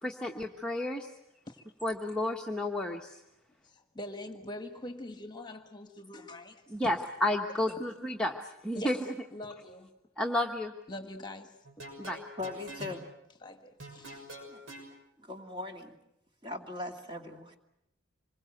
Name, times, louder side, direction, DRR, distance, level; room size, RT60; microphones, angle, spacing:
voice 1, 0.0-1.1 1.8-3.2 6.7-9.0 10.2-10.7 12.0-12.2, left 1 dB, 5° left, -1 dB, 1.1 m, -31 dB
voice 2, 3.6-6.7 7.7-7.8 8.7-9.9 10.9-11.6 12.8-12.9 13.4-14.3, left 1 dB, 20° left, 6 dB, 1.5 m, -44 dB
sound 1, 11.6-13.0 13.8-14.9, right 1 dB, 70° right, 6.3 m, -45 dB
voice 3, 12.4-13.0 14.5-14.6 15.2-16.0 16.4-17.6, left 2 dB, 25° right, 3 dB, 2.3 m, -40 dB
26.0 x 22.0 x 7.8 m, 0.85 s
head